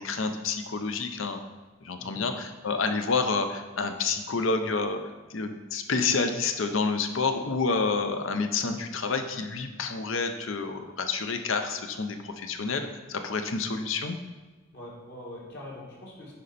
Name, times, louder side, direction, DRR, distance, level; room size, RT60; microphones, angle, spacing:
voice 1, 0.0-1.4 1.8-5.0 5.3-14.2, left 4 dB, 70° left, 7 dB, 0.7 m, -29 dB
voice 2, 2.0-2.3 13.5-13.7 14.7-16.3, left 1 dB, 50° left, -4 dB, 1.9 m, -43 dB
10.5 x 4.4 x 4.2 m, 1.3 s
head